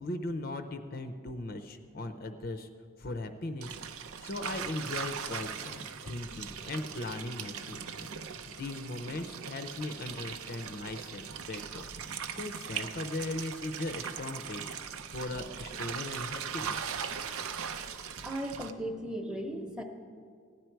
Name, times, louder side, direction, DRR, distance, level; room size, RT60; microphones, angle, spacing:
voice 1, 0.0-2.7 3.0-3.8 4.2-14.8 15.1-16.8, left 2 dB, 45° left, 7 dB, 0.6 m, -39 dB
sound 1, 3.6-18.7, right 7 dB, 85° right, 0.6 m, -40 dB
voice 2, 18.2-19.8, right 1 dB, 5° right, 3 dB, 0.8 m, -36 dB
16.0 x 10.0 x 4.6 m, 2.2 s
head